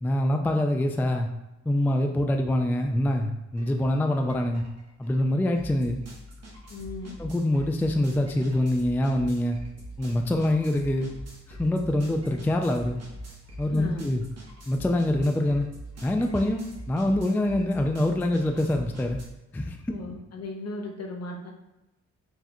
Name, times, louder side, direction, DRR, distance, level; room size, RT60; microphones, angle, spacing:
voice 1, 0.0-1.3 1.7-4.6 5.0-6.0 7.2-9.6 10.0-11.1 11.5-13.0 13.6-14.2 14.7-15.7 16.0-19.2 19.5-19.8, left 1 dB, 5° left, 4 dB, 0.3 m, -25 dB
sound 1, 3.6-3.7 4.0-19.2, right 1 dB, 55° right, 1.3 m, -43 dB
voice 2, 6.7-7.1 13.7-14.1 19.9-21.5, left 2 dB, 55° left, 1 dB, 1.0 m, -37 dB
4.7 x 3.2 x 2.9 m, 0.97 s
cardioid pair, 100°, 30 cm